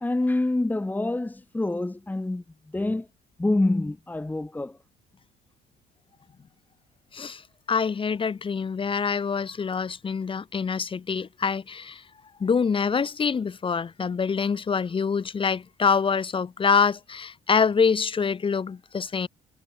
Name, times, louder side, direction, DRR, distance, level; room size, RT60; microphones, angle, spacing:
voice 1, 0.0-3.1 3.4-4.8, left 2 dB, 10° left, 1.7 m, -26 dB
voice 2, 7.7-12.0 12.4-19.3, left 5 dB, 30° left, 2.5 m, -25 dB
cardioid pair, 110°, 17 cm